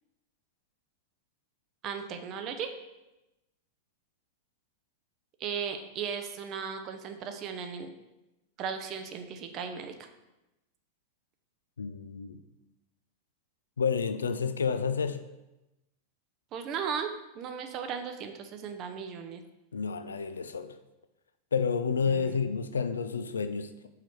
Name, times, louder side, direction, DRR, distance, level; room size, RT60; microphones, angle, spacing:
voice 1, 1.8-2.7 5.4-7.9 8.6-9.9 16.5-17.1 17.4-19.4 22.1-22.4, right 7 dB, 35° right, 6 dB, 0.6 m, -36 dB
voice 2, 11.8-12.4 13.8-15.2 19.7-20.8 21.5-23.7, left 5 dB, 70° left, 10 dB, 0.3 m, -30 dB
4.9 x 4.4 x 4.5 m, 0.97 s
figure-of-eight pair, 90°, 0 cm